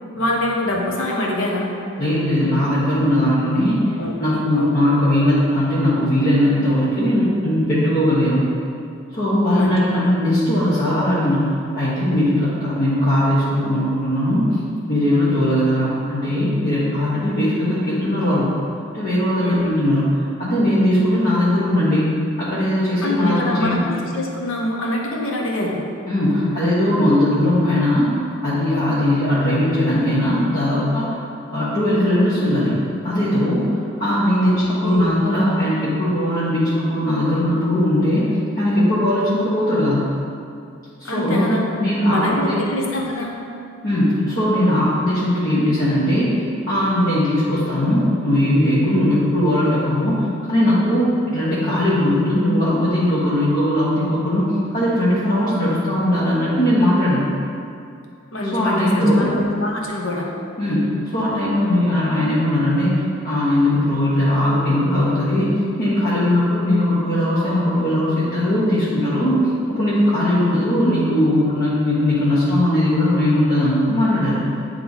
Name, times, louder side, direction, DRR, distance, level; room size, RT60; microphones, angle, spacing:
voice 1, 0.2-1.7 4.0-4.2 4.5-4.7 9.5-10.1 19.4-19.6 23.0-25.8 34.4-35.1 41.0-41.6 42.1-43.3 58.3-60.3, left 1 dB, 80° left, -1 dB, 1.0 m, -24 dB
voice 2, 2.0-8.4 9.1-11.5 11.7-14.6 14.9-18.5 18.9-22.1 22.4-23.9 26.1-28.1 28.4-31.2 31.5-32.8 33.0-38.3 38.6-40.1 41.0-41.5 41.8-42.6 43.8-46.3 46.7-57.3 58.5-59.3 60.6-62.9 63.2-65.5 65.8-69.4 69.7-74.4, left 1 dB, 50° left, -11 dB, 1.1 m, -19 dB
8.7 x 3.3 x 4.0 m, 2.5 s
head